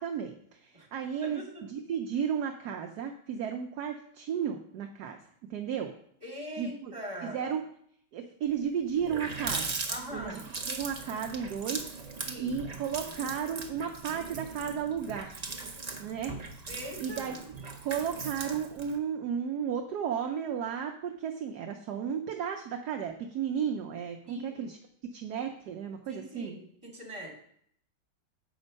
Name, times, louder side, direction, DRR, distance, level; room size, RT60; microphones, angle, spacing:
voice 1, 0.0-5.2 5.5-5.9 6.5-6.9 7.2-7.6 8.1-9.7 10.1-15.3 15.6-15.7 16.0-16.3 17.0-17.3 17.8-24.8 25.1-26.6, right 8 dB, 70° right, 4 dB, 1.1 m, -34 dB
voice 2, 6.2-7.4 9.9-10.4 12.2-12.6 16.7-17.2 24.3-24.7 26.1-27.3, equal, 15° right, -3 dB, 2.8 m, -42 dB
Water tap faucet, 8.5-8.6 8.9-19.0, right 4 dB, 45° right, 0.5 m, -39 dB
7.9 x 5.4 x 5.2 m, 0.66 s
omnidirectional pair, 2.0 m